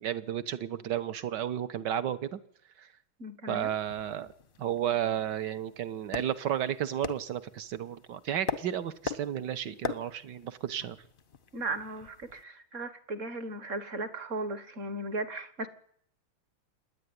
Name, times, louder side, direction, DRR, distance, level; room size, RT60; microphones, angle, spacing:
voice 1, 0.0-2.4 2.8-2.9 3.5-4.3 4.6-11.0, right 10 dB, 60° right, 1.5 m, -32 dB
voice 2, 3.2-3.7 11.5-15.7, right 2 dB, 40° right, 1.5 m, -36 dB
sound 1, 3.6-12.4, left 3 dB, 40° left, 0.8 m, -42 dB
27.0 x 10.5 x 9.6 m
omnidirectional pair, 2.4 m